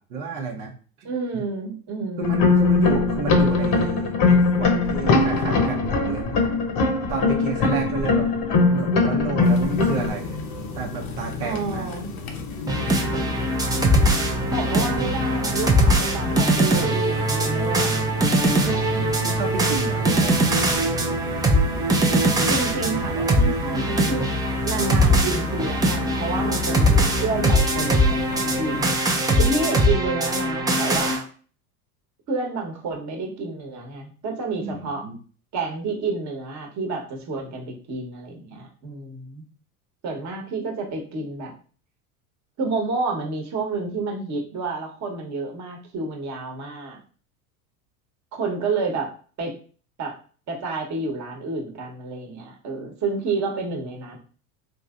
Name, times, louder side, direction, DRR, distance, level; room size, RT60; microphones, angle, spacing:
voice 1, 0.0-1.5 2.2-6.4 7.1-8.3 8.7-10.4 10.7-11.9 18.5-20.5 34.6-35.2, right 3 dB, 70° right, -1 dB, 0.8 m, -31 dB
voice 2, 1.0-2.4 11.4-12.1 14.5-18.1 22.5-24.2 24.6-28.9 29.4-31.3 32.3-35.0 35.5-39.4 40.0-41.5 42.6-47.0 48.3-49.1 49.4-49.5 50.0-50.1 50.5-54.2, right 3 dB, 40° right, 1 dB, 1.1 m, -29 dB
sound 1, 2.2-10.1, left 3 dB, 50° left, 0.8 m, -20 dB
sound 2, 9.4-28.9, left 3 dB, 75° left, 0.8 m, -34 dB
sound 3, 12.7-31.2, right 1 dB, 10° right, 0.3 m, -21 dB
3.1 x 2.6 x 2.4 m, 0.41 s
hypercardioid pair, 85°, 45 cm